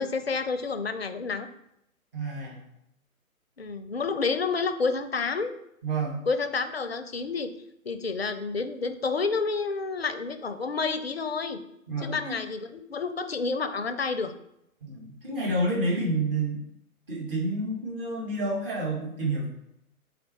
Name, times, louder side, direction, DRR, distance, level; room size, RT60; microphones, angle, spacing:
voice 1, 0.0-1.5 3.6-5.5 6.3-7.5 7.8-11.6 12.0-14.3, left 4 dB, 45° left, 10 dB, 0.5 m, -29 dB
voice 2, 2.1-2.6 5.8-6.2 11.9-12.4 14.8-16.6 17.1-19.5, right 2 dB, 40° right, -4 dB, 2.1 m, -29 dB
5.0 x 4.2 x 4.5 m, 0.80 s
figure-of-eight pair, 135°, 43 cm